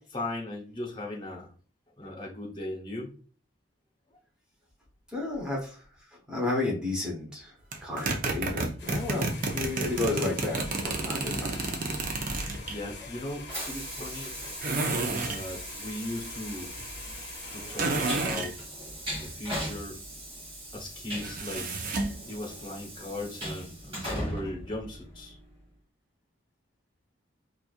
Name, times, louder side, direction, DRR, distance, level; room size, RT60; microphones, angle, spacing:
voice 1, 0.0-1.5 2.0-3.1 5.4-5.5 12.7-14.3 15.1-16.7 17.5-18.6 19.1-20.0 20.7-21.7 22.3-25.4, left 1 dB, 25° left, -1 dB, 0.8 m, -38 dB
voice 2, 5.1-5.8 6.1-7.6 7.8-11.6, left 2 dB, 5° right, -4 dB, 1.0 m, -32 dB
sound 1, 7.7-12.8 14.6-15.4 17.8-18.5 21.2-22.2, right 3 dB, 45° right, 0.5 m, -30 dB
sound 2, 8.8-18.3, left 4 dB, 60° left, 0.7 m, -45 dB
Train, 12.4-25.5, equal, 30° right, 1.8 m, -39 dB
4.2 x 2.4 x 2.4 m, 0.41 s
head